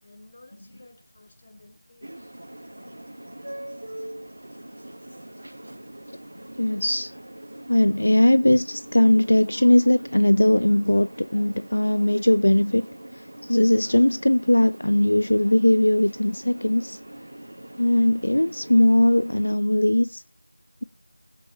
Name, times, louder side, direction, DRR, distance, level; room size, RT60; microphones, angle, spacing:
voice 1, 0.0-2.2, left 2 dB, 25° left, 2.9 m, -53 dB
sound 1, 2.0-19.6, right 1 dB, 65° right, 1.2 m, -42 dB
voice 2, 6.6-7.1 7.7-12.9 13.4-17.0 17.8-20.2, left 1 dB, 70° left, 0.5 m, -19 dB
21.0 x 8.0 x 2.8 m
figure-of-eight pair, 175°, 0 cm